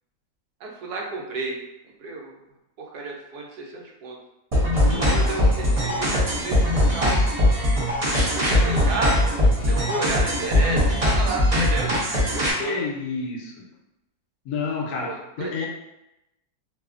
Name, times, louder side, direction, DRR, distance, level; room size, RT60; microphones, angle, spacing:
voice 1, 0.6-1.6 2.0-2.4 2.8-4.2 4.9-7.2 8.3-9.3 9.7-12.8 14.9-15.5, right 3 dB, 85° right, 0 dB, 1.1 m, -32 dB
sound 1, 4.5-12.5, left 1 dB, 50° right, 0.4 m, -21 dB
voice 2, 4.8-5.3 12.6-13.7 14.4-15.7, left 4 dB, 80° left, 0 dB, 1.1 m, -30 dB
2.7 x 2.4 x 2.3 m, 0.90 s
omnidirectional pair, 1.6 m